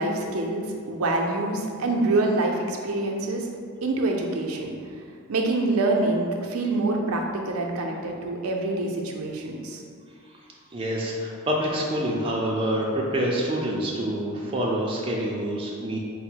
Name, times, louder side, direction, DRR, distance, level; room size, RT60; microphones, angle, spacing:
voice 1, 0.0-3.5 3.8-4.7 5.3-9.8, right 2 dB, 90° right, 1 dB, 0.5 m, -26 dB
voice 2, 10.7-16.0, equal, 25° right, -3 dB, 0.4 m, -26 dB
3.8 x 2.0 x 4.4 m, 2.2 s
head